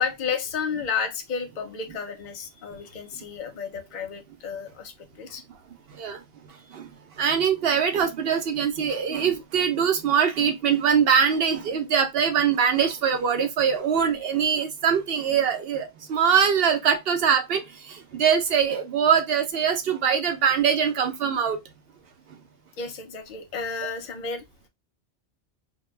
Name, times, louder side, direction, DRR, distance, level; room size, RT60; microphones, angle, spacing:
voice 1, 0.0-5.4 6.7-6.8 22.8-24.4, left 6 dB, 50° left, 0.6 m, -32 dB
voice 2, 7.2-21.6, right 7 dB, 65° right, 0.7 m, -23 dB
2.2 x 2.2 x 3.0 m
omnidirectional pair, 1.2 m